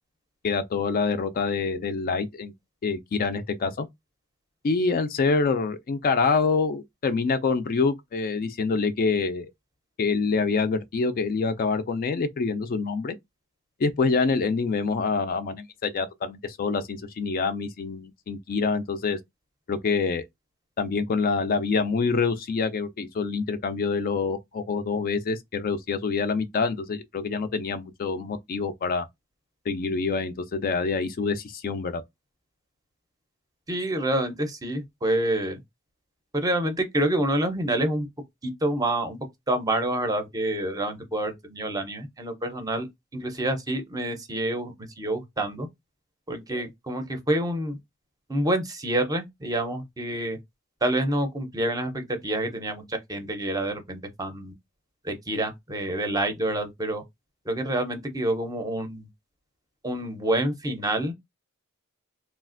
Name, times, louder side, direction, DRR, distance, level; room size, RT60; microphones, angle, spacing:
voice 1, 0.4-2.5 2.8-3.9 4.6-9.5 10.0-13.1 13.8-19.2 19.7-20.2 20.8-29.1 29.7-32.0, left 4 dB, 45° left, 0.3 m, -26 dB
voice 2, 33.7-35.6 36.3-38.1 38.4-39.2 39.5-42.9 43.1-45.7 46.3-47.8 48.3-50.4 50.8-54.5 55.0-57.0 57.5-59.1 59.8-61.1, right 1 dB, 15° right, 0.5 m, -27 dB
3.1 x 2.4 x 2.4 m
head